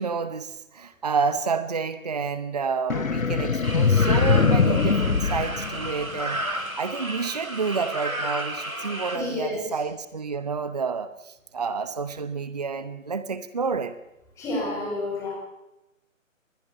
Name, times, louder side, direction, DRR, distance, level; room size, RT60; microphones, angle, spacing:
voice 1, 0.0-6.4 6.8-13.9, right 5 dB, 30° right, 13 dB, 0.9 m, -29 dB
sound 1, 2.9-6.4, left 5 dB, 75° left, 1.0 m, -22 dB
sound 2, 3.6-9.2, right 1 dB, 90° right, 3.9 m, -32 dB
voice 2, 9.1-9.8 14.4-15.3, left 2 dB, 5° left, -4 dB, 6.5 m, -29 dB
24.5 x 21.0 x 5.5 m, 0.92 s
figure-of-eight pair, 150°, 40 cm